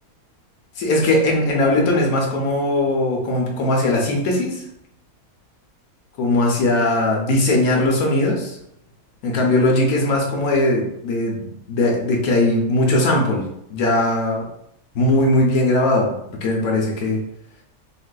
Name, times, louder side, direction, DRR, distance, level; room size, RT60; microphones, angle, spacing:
voice 1, 0.8-4.6 6.2-8.6 9.2-14.4 14.9-17.2, left 1 dB, 75° left, -1 dB, 1.1 m, -19 dB
3.8 x 2.5 x 2.2 m, 0.77 s
omnidirectional pair, 1.6 m